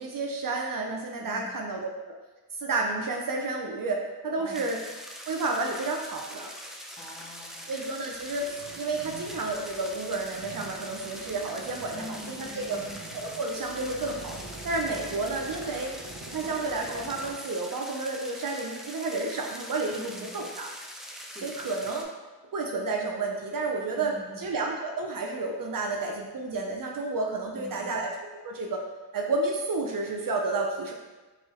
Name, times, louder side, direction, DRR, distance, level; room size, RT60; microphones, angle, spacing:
voice 1, 0.0-2.2 2.6-4.8 5.3-6.5 7.7-12.8 13.1-14.4 14.6-15.9 16.3-20.0 20.3-20.7 21.4-22.1 22.5-24.1 24.4-28.1 28.4-28.8 29.1-30.9, right 3 dB, 65° right, 1 dB, 0.5 m, -31 dB
voice 2, 1.2-1.5 4.4-4.8 7.0-7.8 11.9-13.0 14.9-15.4 20.0-20.5 21.3-21.6 23.9-24.5 27.5-28.0, left 1 dB, 15° left, -3 dB, 1.0 m, -45 dB
sound 1, 4.5-22.0, equal, ahead, 0.5 m, -43 dB
sound 2, 8.1-17.3, right 2 dB, 90° right, 1.0 m, -45 dB
4.4 x 3.1 x 3.1 m, 1.2 s
wide cardioid pair, 70°, 37 cm